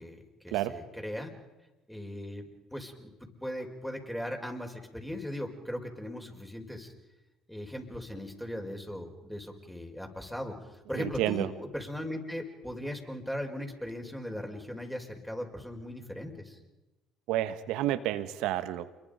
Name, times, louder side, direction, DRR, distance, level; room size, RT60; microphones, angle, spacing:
voice 1, 0.0-1.3 1.9-3.1 3.4-6.9 7.5-10.6 10.9-16.6, left 1 dB, 5° left, 3 dB, 5.4 m, -38 dB
voice 2, 10.9-11.5 17.3-18.9, right 14 dB, 70° right, 12 dB, 1.4 m, -30 dB
29.0 x 23.0 x 5.3 m, 1.1 s
hypercardioid pair, 60°, 0 cm